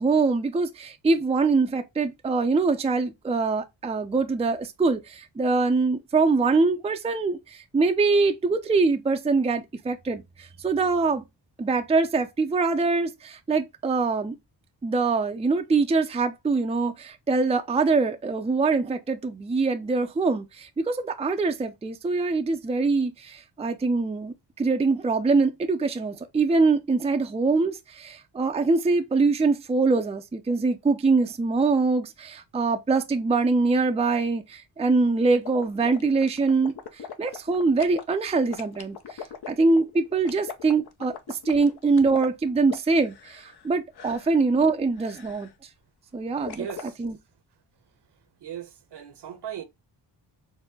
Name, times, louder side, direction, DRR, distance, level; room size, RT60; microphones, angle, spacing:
voice 1, 0.0-11.2 11.6-14.4 14.8-36.7 37.2-45.5 46.1-46.7 47.0-47.2, right 4 dB, 15° right, 0.5 m, -24 dB
sound 1, 35.4-38.0 38.5-43.7 43.9-44.4 45.0-45.5 46.5-46.9, left 7 dB, 60° left, 0.8 m, -40 dB
voice 2, 46.5-47.0 48.4-49.6, right 9 dB, 65° right, 0.9 m, -37 dB
4.6 x 2.1 x 3.6 m
cardioid pair, 70°, 44 cm